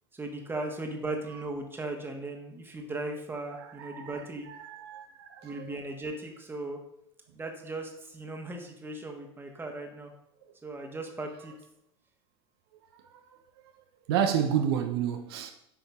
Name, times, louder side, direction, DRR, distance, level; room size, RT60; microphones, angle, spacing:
voice 1, 0.1-4.5 5.4-6.8 7.3-10.1 10.6-11.5, right 2 dB, 15° right, 1.3 m, -37 dB
voice 2, 3.6-5.7 14.1-15.5, right 8 dB, 65° right, 0.6 m, -30 dB
8.1 x 5.3 x 2.4 m
hypercardioid pair, 75°, 14 cm